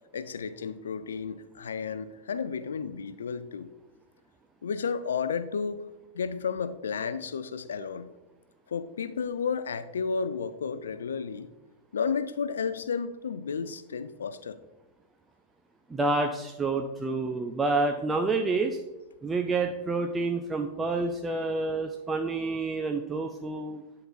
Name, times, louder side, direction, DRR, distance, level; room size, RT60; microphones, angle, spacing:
voice 1, 0.1-3.7 4.6-5.8 6.1-8.1 8.7-11.5 11.9-14.6, left 6 dB, 65° left, 13 dB, 0.4 m, -32 dB
voice 2, 15.9-18.8 19.2-23.8, right 3 dB, 15° right, 4 dB, 0.5 m, -28 dB
10.5 x 3.8 x 4.5 m, 1.1 s
figure-of-eight pair, 90°, 0 cm